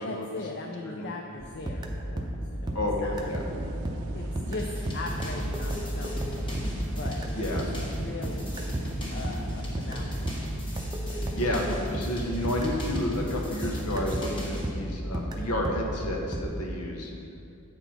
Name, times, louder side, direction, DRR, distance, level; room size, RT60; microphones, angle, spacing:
voice 1, 0.0-3.3 4.1-6.4 7.0-8.7 9.1-10.4, left 3 dB, 50° left, 1 dB, 0.5 m, -39 dB
sound 1, 1.4-13.4 13.6-16.4, right 1 dB, 20° right, 0.5 m, -33 dB
voice 2, 2.7-3.4 7.4-7.6 11.3-17.1, left 1 dB, 90° left, 0 dB, 1.0 m, -30 dB
sound 2, 3.1-11.9, right 2 dB, 75° right, 0.5 m, -44 dB
sound 3, 4.6-14.7, equal, 20° left, 1.3 m, -39 dB
7.8 x 4.4 x 5.6 m, 2.5 s
head